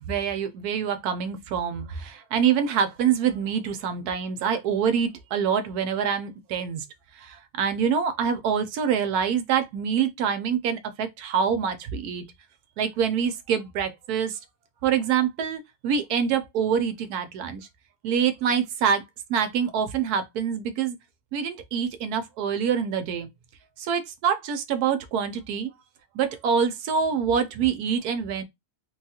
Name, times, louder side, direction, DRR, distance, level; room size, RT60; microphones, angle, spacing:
voice 1, 0.0-6.8 7.2-12.3 12.8-14.4 14.8-17.7 18.0-19.0 19.3-21.0 21.3-23.3 23.8-25.7 26.1-28.4, right 7 dB, 80° right, 1.1 m, -25 dB
3.4 x 2.3 x 2.8 m
omnidirectional pair, 1.6 m